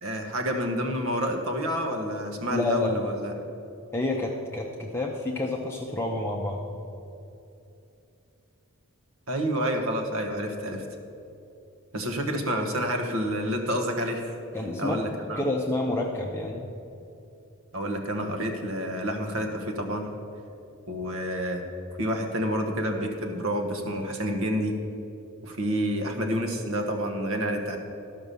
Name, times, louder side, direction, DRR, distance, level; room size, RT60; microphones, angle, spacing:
voice 1, 0.0-3.3 9.3-10.8 11.9-14.3 14.8-15.5 17.7-20.1 20.9-21.6 22.0-24.8 25.4-27.8, equal, 65° right, 4 dB, 1.3 m, -29 dB
voice 2, 2.5-3.1 3.9-6.6 14.5-14.9 15.3-16.6, left 2 dB, 10° left, -1 dB, 0.6 m, -29 dB
12.5 x 5.9 x 6.8 m, 2.8 s
head